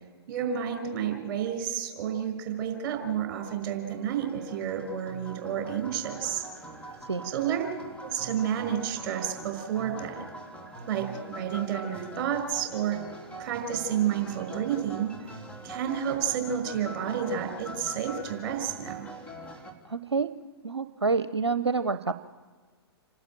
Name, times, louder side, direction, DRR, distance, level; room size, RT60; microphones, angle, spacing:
voice 1, 0.3-6.4 7.2-7.7 8.0-10.3 10.9-13.0 13.4-15.1 15.6-19.1, right 9 dB, 45° right, 6 dB, 5.3 m, -30 dB
sound 1, 3.5-19.7, right 1 dB, 10° left, 3.5 m, -44 dB
voice 2, 19.8-20.3 20.6-22.1, right 4 dB, 85° right, 12 dB, 0.7 m, -27 dB
28.0 x 12.5 x 9.0 m, 1.5 s
figure-of-eight pair, 120°, 14 cm